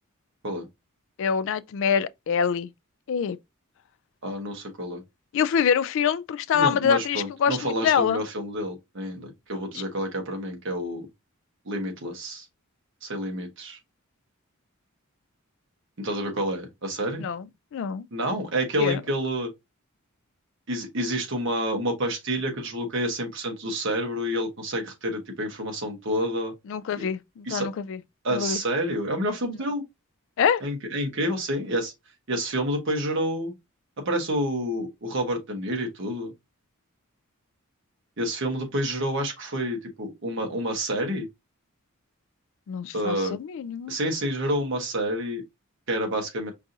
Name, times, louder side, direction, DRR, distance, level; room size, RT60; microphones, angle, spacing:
voice 1, 1.2-2.7 3.1-3.4 5.3-8.2 9.7-9.8 17.2-17.5 17.7-18.1 18.8-19.0 26.7-28.0 28.3-28.6 30.4-30.6 42.7-44.0, left 7 dB, 60° left, 0.3 m, -25 dB
voice 2, 4.2-5.0 6.5-11.1 11.6-12.4 13.0-13.8 16.0-17.2 18.1-19.5 20.7-26.5 27.0-27.1 27.5-27.7 28.2-29.8 30.6-31.9 32.3-33.5 34.0-36.3 38.2-41.3 42.9-43.3 43.9-45.4 45.9-46.5, equal, 60° right, 1.1 m, -28 dB
4.7 x 2.5 x 2.6 m
head